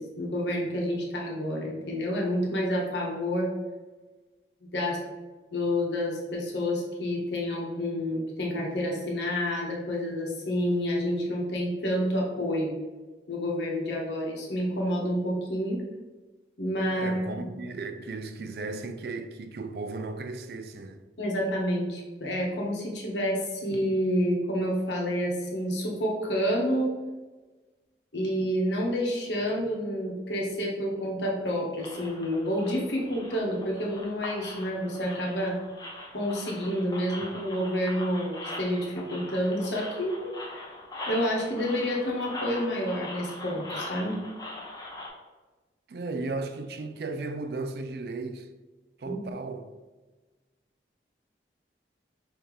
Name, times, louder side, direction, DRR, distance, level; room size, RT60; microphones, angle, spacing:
voice 1, 0.0-3.5 4.7-5.0 5.5-12.7 13.3-15.8 16.6-17.2 21.2-27.0 28.1-35.6 36.1-40.6 41.1-44.2 49.0-49.2, equal, 85° left, 1.3 m, -29 dB
voice 2, 16.9-21.0 45.9-48.5 49.0-49.7, right 3 dB, 60° right, 0.4 m, -35 dB
sound 1, 31.8-45.1, left 2 dB, 20° left, 0.8 m, -41 dB
5.6 x 2.8 x 3.3 m
head